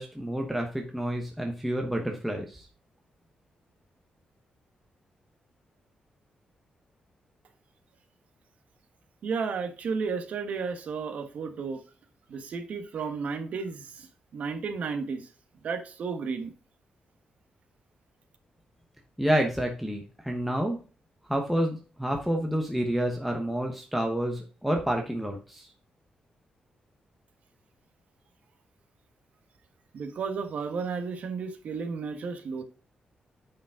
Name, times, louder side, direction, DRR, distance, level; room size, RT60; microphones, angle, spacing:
voice 1, 0.0-2.7 19.2-20.8 21.3-25.7, equal, ahead, 1.0 m, -29 dB
voice 2, 9.2-11.8 12.3-14.1 14.3-15.3 15.6-16.5 29.9-32.6, right 5 dB, 60° right, 1.3 m, -33 dB
8.8 x 5.2 x 3.6 m
wide cardioid pair, 170°, 3 cm